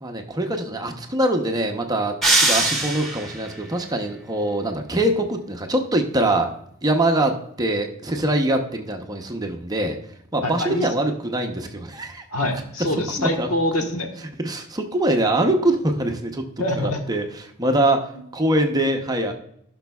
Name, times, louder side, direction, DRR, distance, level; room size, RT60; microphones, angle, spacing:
voice 1, 0.0-6.5 6.8-10.0 10.3-12.2 13.2-13.5 14.4-16.5 16.7-18.1 18.3-19.3, right 1 dB, 15° right, 4 dB, 0.7 m, -23 dB
sound 1, 2.2-3.5, right 2 dB, ahead, 2.0 m, -20 dB
voice 2, 10.4-10.9 12.3-14.1 16.6-17.0, left 1 dB, 85° left, 3 dB, 1.3 m, -24 dB
15.0 x 6.0 x 2.3 m, 0.72 s
head